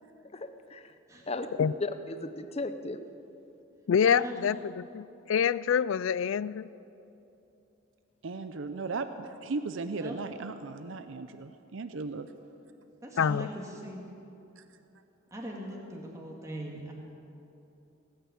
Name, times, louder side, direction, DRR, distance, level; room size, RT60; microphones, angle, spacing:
voice 1, 0.3-1.0 1.3-1.5 1.8-3.0, left 2 dB, 30° left, 10 dB, 0.7 m, -36 dB
voice 2, 3.9-6.7 13.2-13.5, left 7 dB, 75° left, 19 dB, 0.4 m, -26 dB
voice 3, 8.2-12.3 14.6-14.7, right 3 dB, 70° right, 10 dB, 0.6 m, -36 dB
voice 4, 13.0-14.1 15.3-16.9, right 1 dB, 15° right, -2 dB, 1.9 m, -40 dB
18.0 x 9.3 x 8.6 m, 2.9 s
head